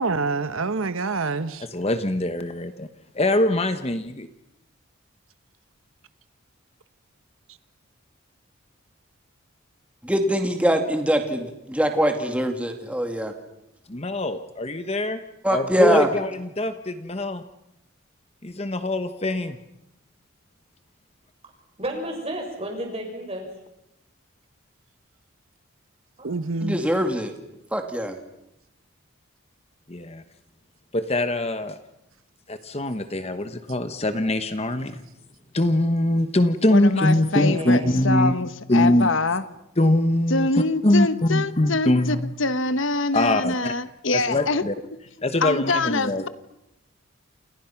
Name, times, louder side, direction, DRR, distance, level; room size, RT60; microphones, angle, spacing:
voice 1, 0.0-1.7 26.2-26.8, right 3 dB, 75° right, 12 dB, 1.1 m, -26 dB
voice 2, 1.7-2.9 3.1-4.3 13.9-15.2 15.5-17.4 18.4-19.6 29.9-30.2 30.9-31.8 32.5-35.0 35.5-38.3 38.7-39.1 39.8-42.3 43.1-43.7 44.1-44.7 45.2-46.3, left 1 dB, 30° left, 9 dB, 1.1 m, -23 dB
voice 3, 10.0-13.3 15.4-16.1 26.6-27.3 27.7-28.2, equal, 5° right, 4 dB, 2.3 m, -23 dB
voice 4, 21.8-23.4 26.2-26.4 37.1-38.0, right 1 dB, 30° right, 2 dB, 6.8 m, -32 dB
voice 5, 36.7-39.4 40.3-44.6 45.4-46.3, left 3 dB, 60° left, 12 dB, 1.1 m, -25 dB
29.0 x 28.5 x 5.9 m, 0.88 s
head